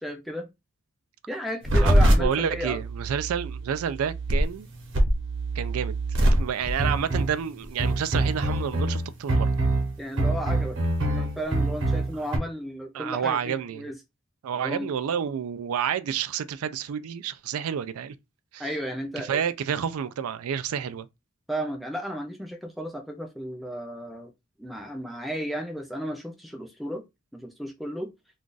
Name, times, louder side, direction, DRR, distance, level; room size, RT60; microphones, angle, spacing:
voice 1, 0.0-0.5 1.3-2.8 10.0-14.0 14.6-14.9 18.6-19.4 21.5-24.3 24.6-27.0 27.3-28.1, equal, ahead, 0.4 m, -34 dB
sound 1, 1.6-12.4, right 1 dB, 60° right, 0.9 m, -24 dB
voice 2, 1.8-4.7 5.5-6.0 6.2-9.5 12.1-12.2 12.9-13.8 14.4-18.1 18.5-18.7 19.3-21.1, right 8 dB, 90° right, 0.4 m, -29 dB
2.4 x 2.3 x 3.8 m
head